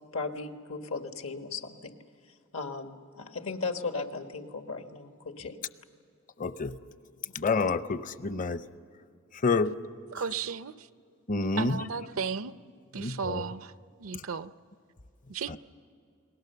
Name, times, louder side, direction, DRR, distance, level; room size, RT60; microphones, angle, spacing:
voice 1, 0.1-1.9 2.5-5.6, left 4 dB, 80° left, 6 dB, 1.5 m, -36 dB
voice 2, 6.4-6.8 7.3-8.6 9.4-9.8 11.3-11.8 13.0-13.4, left 4 dB, 40° left, 13 dB, 0.7 m, -28 dB
voice 3, 10.1-10.9 11.6-12.5 12.9-13.7 14.0-14.5 15.3-15.6, right 6 dB, 80° right, 14 dB, 0.6 m, -34 dB
30.0 x 20.5 x 6.8 m, 2.4 s
head